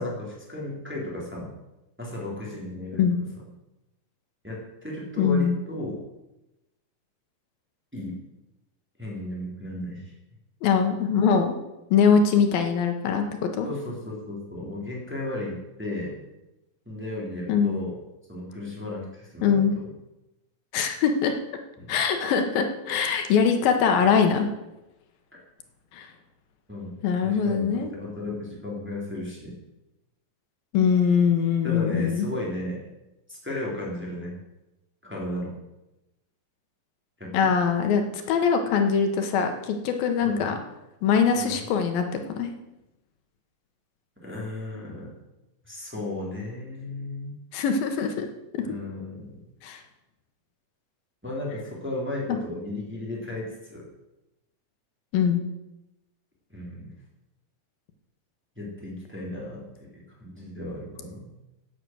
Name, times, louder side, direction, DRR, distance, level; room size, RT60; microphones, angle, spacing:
voice 1, 0.0-1.5 2.0-3.0 4.4-6.0 7.9-8.2 9.0-10.1 13.6-16.2 16.8-18.0 18.3-19.8 21.8-22.0 26.7-26.9 27.2-29.5 31.6-32.8 33.3-34.3 35.0-35.5 37.2-37.5 40.2-40.5 41.3-41.6 44.2-45.1 45.6-47.4 48.6-49.4 51.2-53.9 56.5-56.9 58.6-59.9 60.2-61.3, left 1 dB, 5° right, -4 dB, 3.1 m, -34 dB
voice 2, 5.2-5.5 10.6-11.6 11.9-13.7 17.5-17.8 19.4-19.7 20.7-21.4 21.9-24.5 25.9-26.1 27.0-27.9 30.7-32.3 37.3-40.5 41.0-42.5 47.5-48.3 48.5-48.6 49.6-49.8 55.1-55.4, left 6 dB, 85° left, 6 dB, 3.0 m, -22 dB
11.0 x 8.9 x 7.9 m, 0.97 s
omnidirectional pair, 4.1 m